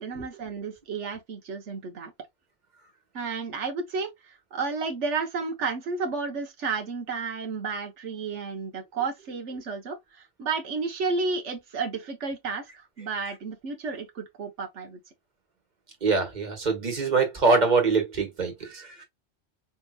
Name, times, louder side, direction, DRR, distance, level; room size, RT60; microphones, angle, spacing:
voice 1, 0.0-2.1 3.1-15.0, right 4 dB, 85° right, 1.3 m, -32 dB
voice 2, 16.0-19.0, right 4 dB, 40° right, 1.5 m, -24 dB
5.2 x 2.8 x 2.3 m
omnidirectional pair, 1.2 m